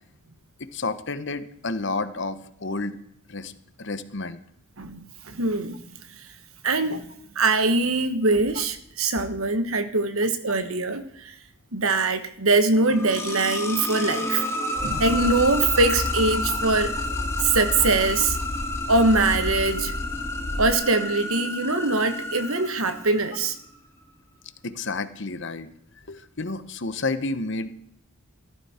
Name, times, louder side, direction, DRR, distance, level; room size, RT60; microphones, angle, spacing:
voice 1, 0.6-3.0 3.3-3.5 3.8-4.4 16.4-16.6 24.6-25.7 26.1-27.7, left 3 dB, 55° left, 12 dB, 1.0 m, -30 dB
voice 2, 5.2-5.8 6.6-7.1 7.3-11.3 11.7-14.4 14.8-16.9 17.4-18.4 18.9-19.9 20.6-23.6, right 3 dB, 75° right, 10 dB, 1.3 m, -22 dB
sound 1, 12.7-23.5, left 2 dB, 10° left, 1.5 m, -31 dB
sound 2, 14.8-20.7, left 1 dB, 25° left, 0.8 m, -32 dB
15.0 x 13.5 x 4.3 m, 0.72 s
head